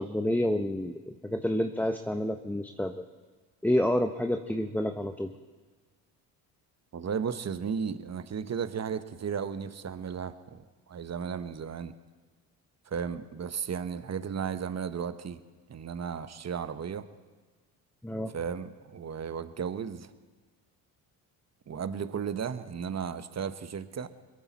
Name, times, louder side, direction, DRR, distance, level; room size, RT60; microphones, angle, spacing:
voice 1, 0.0-3.0 3.6-5.3 18.0-18.3, left 1 dB, 5° left, 6 dB, 0.9 m, -29 dB
voice 2, 6.9-11.9 12.9-15.4 15.7-17.1 18.3-20.1 21.7-24.1, right 7 dB, 35° right, 11 dB, 1.1 m, -34 dB
22.0 x 14.0 x 4.2 m, 1.4 s
hypercardioid pair, 55°, 48 cm